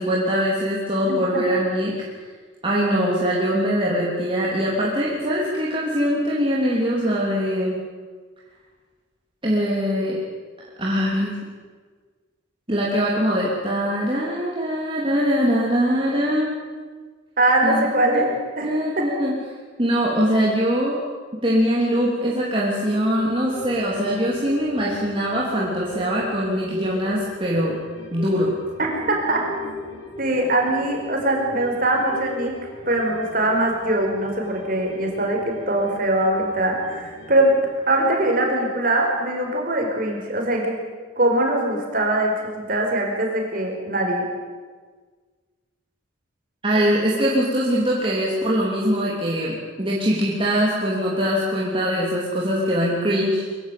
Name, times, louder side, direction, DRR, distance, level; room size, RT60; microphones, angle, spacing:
voice 1, 0.0-1.9 2.6-7.8 9.4-10.2 10.8-11.4 12.7-16.5 17.6-17.8 18.6-19.3 19.8-21.0 21.4-27.8 28.1-28.5 46.6-53.4, equal, 25° right, -5 dB, 3.4 m, -22 dB
voice 2, 17.4-18.7 28.8-29.4 29.7-32.5 32.9-37.5 37.9-40.8 41.2-44.2, right 1 dB, 45° right, 1 dB, 5.1 m, -22 dB
sound 1, 22.8-39.6 40.0-40.1, left 2 dB, 70° left, 6.7 m, -39 dB
23.5 x 16.0 x 9.4 m, 1.5 s
head